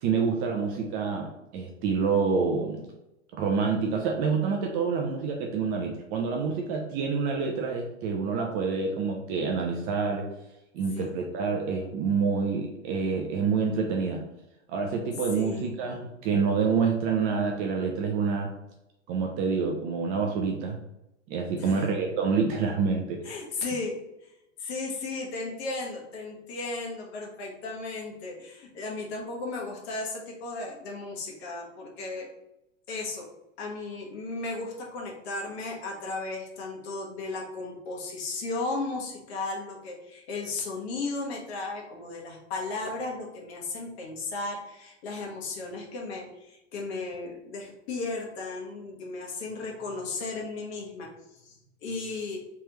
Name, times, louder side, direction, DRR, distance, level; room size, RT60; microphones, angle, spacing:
voice 1, 0.0-2.9 3.3-10.3 10.7-14.2 14.7-18.5 19.1-20.8 21.3-23.2, right 5 dB, 25° right, 1 dB, 0.4 m, -27 dB
voice 2, 15.3-15.8 21.6-21.9 23.2-23.9 24.2-24.3 24.6-32.3 32.9-33.2 33.6-52.4, left 3 dB, 55° left, -1 dB, 1.4 m, -35 dB
3.4 x 3.1 x 3.0 m, 0.89 s
hypercardioid pair, 120°, 38 cm